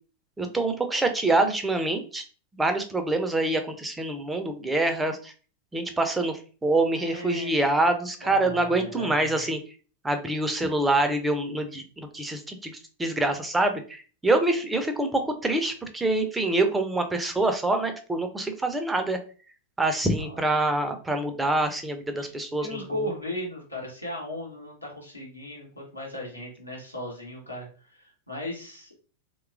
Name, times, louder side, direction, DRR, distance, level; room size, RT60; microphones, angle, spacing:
voice 1, 0.4-2.2 2.5-5.3 5.7-6.3 6.6-9.6 10.0-12.7 13.0-19.2 19.8-22.8, right 2 dB, 10° right, 6 dB, 0.4 m, -25 dB
voice 2, 6.9-7.5 8.2-9.4 20.2-20.4 22.2-22.3 22.6-29.0, left 1 dB, 85° left, -3 dB, 0.9 m, -37 dB
2.9 x 2.2 x 2.3 m, 0.38 s
figure-of-eight pair, 90°, 0 cm